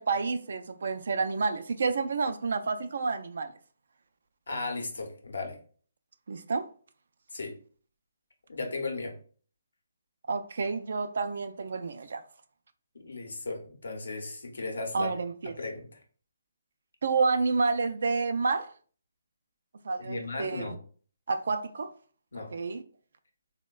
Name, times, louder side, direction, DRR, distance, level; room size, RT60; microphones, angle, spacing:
voice 1, 0.0-3.5 6.3-6.6 10.3-12.2 14.9-15.5 17.0-18.7 19.8-20.8 21.3-21.9 22.5-22.8, right 4 dB, 65° right, 0.3 m, -29 dB
voice 2, 4.5-5.6 7.3-7.6 8.5-9.1 12.9-15.1 15.6-15.9 20.0-20.8 22.3-22.6, left 3 dB, 75° left, 0.7 m, -36 dB
3.5 x 2.1 x 2.2 m
figure-of-eight pair, 145°, 0 cm